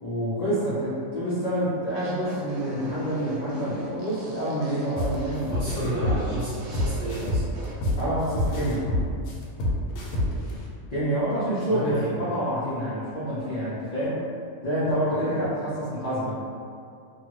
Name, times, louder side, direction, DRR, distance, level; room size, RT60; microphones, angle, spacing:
voice 1, 0.0-5.5 6.0-6.2 8.0-8.8 10.9-14.2 14.6-16.4, right 1 dB, 65° left, -12 dB, 0.4 m, -27 dB
sound 1, 1.9-7.7, right 2 dB, 75° right, 1.1 m, -40 dB
sound 2, 5.0-5.1 5.5-8.0 8.3-10.5, left 1 dB, 80° left, 1.1 m, -26 dB
voice 2, 5.5-7.4 10.3-10.6 11.7-12.5 15.1-15.4, equal, 55° right, -9 dB, 0.9 m, -32 dB
2.7 x 2.4 x 2.9 m, 2.4 s
omnidirectional pair, 1.6 m